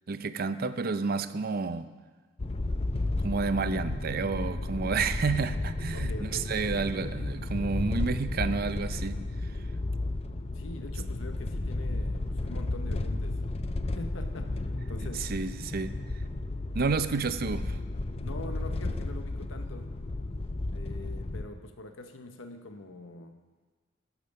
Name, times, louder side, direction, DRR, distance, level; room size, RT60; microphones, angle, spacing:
voice 1, 0.1-1.9 3.2-9.2 15.0-15.9 16.7-17.8, right 4 dB, 50° right, 12 dB, 0.5 m, -30 dB
sound 1, 2.4-21.4, left 2 dB, 30° left, 0.5 m, -33 dB
voice 2, 5.9-6.5 10.5-13.4 13.9-15.3 18.2-19.9 20.7-23.4, left 2 dB, 85° left, 6 dB, 0.9 m, -44 dB
12.0 x 7.5 x 6.4 m, 1.4 s
head